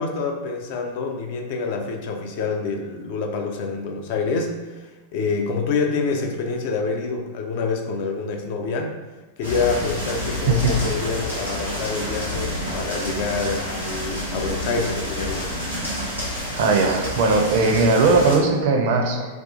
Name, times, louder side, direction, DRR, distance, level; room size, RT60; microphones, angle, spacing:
voice 1, 0.0-8.9 9.4-15.5, left 4 dB, 50° left, 2 dB, 0.3 m, -27 dB
sound 1, 9.4-18.4, left 1 dB, 85° left, 0.8 m, -29 dB
voice 2, 16.5-19.3, right 3 dB, 50° right, 2 dB, 0.4 m, -19 dB
2.6 x 2.3 x 2.4 m, 1.2 s
figure-of-eight pair, 90°, 0 cm